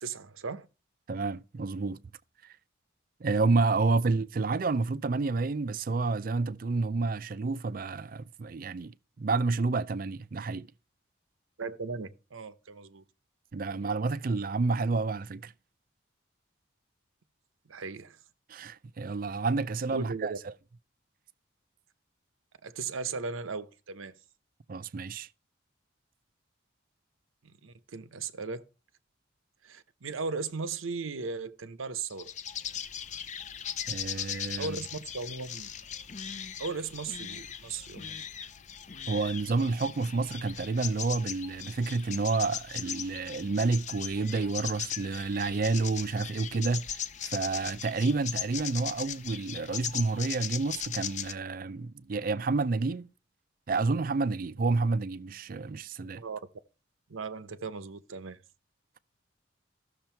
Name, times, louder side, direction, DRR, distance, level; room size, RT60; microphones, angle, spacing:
voice 1, 0.0-0.7 11.6-13.0 13.7-13.9 17.7-18.2 19.9-20.4 22.6-24.1 27.4-28.7 29.6-32.3 34.6-35.7 36.6-38.2 56.2-56.4 57.1-58.4, right 4 dB, 85° right, 0.8 m, -37 dB
voice 2, 1.1-2.0 2.4-2.5 3.2-10.7 13.5-15.5 18.5-20.5 24.7-25.3 33.9-34.8 39.1-53.1 53.7-56.2, right 3 dB, 45° right, 0.4 m, -29 dB
sound 1, 32.1-51.3, left 8 dB, 35° left, 0.5 m, -39 dB
14.0 x 6.5 x 4.5 m
head